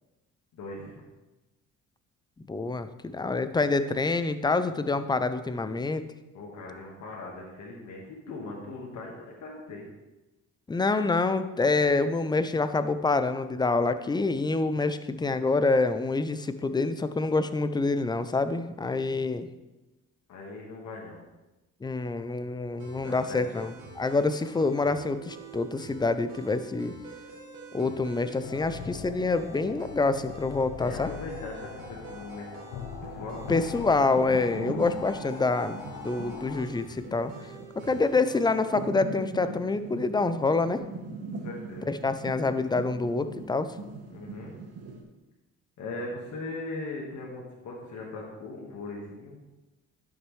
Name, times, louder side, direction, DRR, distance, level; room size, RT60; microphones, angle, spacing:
voice 1, 0.5-1.0 6.3-9.8 20.3-21.2 23.0-23.7 30.7-32.5 33.0-33.4 41.4-41.9 44.1-44.5 45.8-49.4, left 2 dB, 70° left, -2 dB, 1.7 m, -39 dB
voice 2, 2.5-2.9 3.1-6.1 10.7-19.5 21.8-26.9 27.7-31.1 33.5-37.3 37.8-40.8 41.9-43.7, left 3 dB, 15° left, 11 dB, 0.5 m, -26 dB
sound 1, 22.8-38.8, right 5 dB, 90° right, 1.8 m, -46 dB
sound 2, 28.4-36.6, left 9 dB, 90° left, 0.6 m, -41 dB
sound 3, 32.9-45.0, right 3 dB, 55° right, 1.3 m, -41 dB
10.5 x 6.2 x 3.2 m, 1.0 s
cardioid pair, 90°, 30 cm